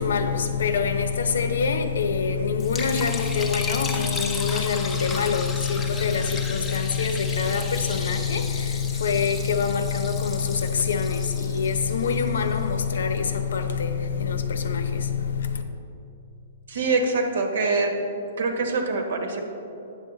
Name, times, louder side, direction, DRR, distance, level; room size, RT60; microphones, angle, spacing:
voice 1, 0.0-15.6, left 6 dB, 80° left, 8 dB, 0.7 m, -25 dB
Liquid, 2.6-12.8, left 4 dB, 10° left, 0.5 m, -35 dB
voice 2, 16.7-19.4, right 3 dB, 65° right, 4 dB, 1.2 m, -25 dB
9.1 x 6.6 x 3.9 m, 2.8 s
hypercardioid pair, 170°, 0 cm